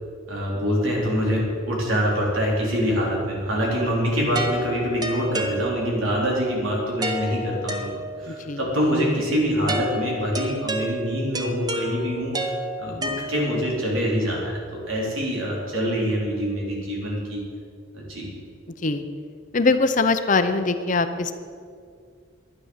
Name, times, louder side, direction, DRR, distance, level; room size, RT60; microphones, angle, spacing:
voice 1, 0.3-17.4 17.9-18.3, equal, 75° right, -3 dB, 4.1 m, -25 dB
sound 1, 4.4-6.1 7.0-8.4 9.7-13.8, right 1 dB, 20° right, 0.9 m, -31 dB
voice 2, 8.3-8.6 18.8-19.0 19.5-21.3, left 3 dB, 40° left, 9 dB, 0.6 m, -22 dB
12.0 x 9.8 x 7.3 m, 2.2 s
head